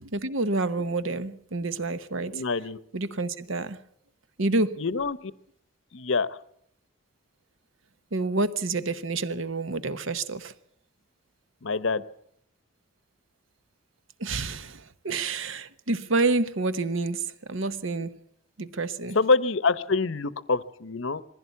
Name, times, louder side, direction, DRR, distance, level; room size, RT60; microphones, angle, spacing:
voice 1, 0.0-2.4 2.9-3.8 4.4-4.8 8.1-10.5 14.2-18.2 18.6-19.2, right 3 dB, 65° right, 1.0 m, -28 dB
voice 2, 2.3-2.8 4.8-5.3 5.9-6.3 11.6-12.0 19.1-21.2, left 4 dB, 65° left, 0.8 m, -25 dB
21.0 x 15.5 x 8.3 m
head